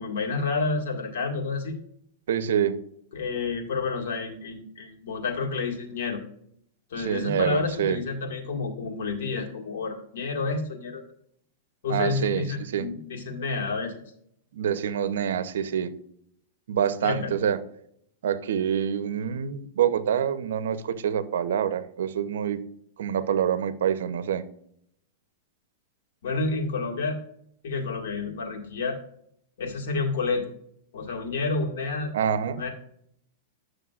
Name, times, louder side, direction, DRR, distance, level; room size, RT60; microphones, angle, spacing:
voice 1, 0.0-1.8 3.1-6.2 6.9-11.0 11.8-14.0 17.0-17.3 26.2-27.2 27.6-29.0 29.6-30.5 30.9-32.1 32.5-32.7, left 4 dB, 75° left, 1 dB, 1.9 m, -29 dB
voice 2, 2.3-2.8 7.0-8.0 11.9-12.9 14.5-15.9 16.7-17.6 18.2-22.6 23.0-24.4 32.1-32.6, right 8 dB, 80° right, 13 dB, 0.7 m, -26 dB
11.0 x 6.5 x 2.4 m, 0.70 s
supercardioid pair, 140°, 0 cm